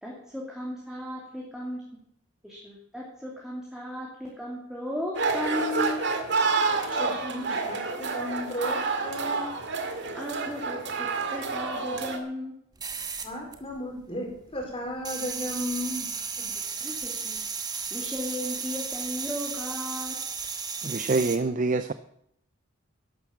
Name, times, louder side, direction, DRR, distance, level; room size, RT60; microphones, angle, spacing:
voice 1, 0.0-1.8 2.4-6.0 9.1-9.2 10.1-12.6 16.8-17.4 17.9-20.1, left 1 dB, 5° right, -4 dB, 2.8 m, -35 dB
sound 1, 5.1-12.2, right 4 dB, 55° right, 2.0 m, -29 dB
voice 2, 6.9-9.5 13.2-16.6, equal, 25° left, 1 dB, 4.2 m, -35 dB
sound 2, 12.8-14.1 14.3-21.4, right 5 dB, 20° right, 1.3 m, -34 dB
voice 3, 20.8-21.9, right 3 dB, 35° right, 11 dB, 0.5 m, -25 dB
12.0 x 11.5 x 7.3 m, 0.73 s
head